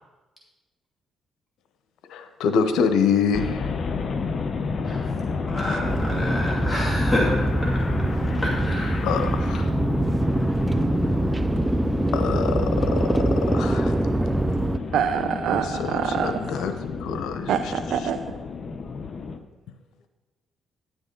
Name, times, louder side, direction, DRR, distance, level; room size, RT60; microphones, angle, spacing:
voice 1, 2.1-4.0 5.7-5.8 9.0-9.7 12.1-13.2 13.5-14.0 15.6-16.7 17.0-17.7 18.0-18.1, left 6 dB, 85° left, 8 dB, 0.9 m, -26 dB
sound 1, 3.3-19.4, left 4 dB, 45° left, 0.8 m, -30 dB
voice 2, 5.5-7.5 8.6-9.1, left 1 dB, 10° left, -5 dB, 2.5 m, -28 dB
sound 2, 5.8-14.8, right 2 dB, 15° right, 0.3 m, -24 dB
voice 3, 14.9-16.3 17.5-18.2, right 8 dB, 80° right, 8 dB, 0.5 m, -25 dB
10.5 x 9.1 x 3.8 m, 1.2 s
cardioid pair, 90°, 0 cm